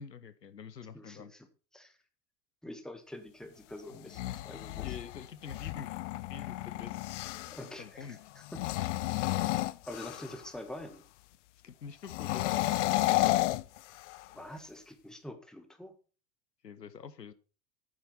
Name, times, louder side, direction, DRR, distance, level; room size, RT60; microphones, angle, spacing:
voice 1, 0.0-1.3 4.8-5.9 6.3-7.1 7.6-8.2 11.6-12.5 16.6-17.3, left 6 dB, 85° left, 0.9 m, -46 dB
voice 2, 0.9-1.5 1.7-2.0 2.6-5.0 7.5-8.6 9.9-11.0 14.3-15.9, left 1 dB, ahead, 1.5 m, -46 dB
sound 1, 3.9-7.7 8.4-10.5 12.0-14.3, left 17 dB, 50° left, 0.6 m, -32 dB
9.0 x 7.6 x 5.8 m
figure-of-eight pair, 85°, 49 cm